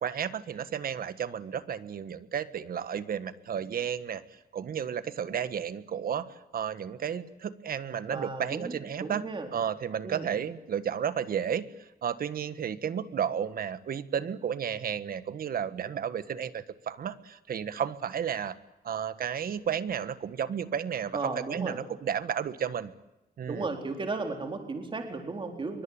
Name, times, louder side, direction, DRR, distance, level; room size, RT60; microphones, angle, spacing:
voice 1, 0.0-9.2 9.5-11.7 12.0-18.6 18.8-22.9 23.4-23.7, right 8 dB, 65° right, 13 dB, 1.6 m, -32 dB
voice 2, 8.1-8.7 9.0-9.5 10.0-10.3 21.1-21.8 23.5-25.8, right 3 dB, 30° right, 4 dB, 4.0 m, -35 dB
25.5 x 24.0 x 9.0 m, 0.97 s
wide cardioid pair, 160°, 16 cm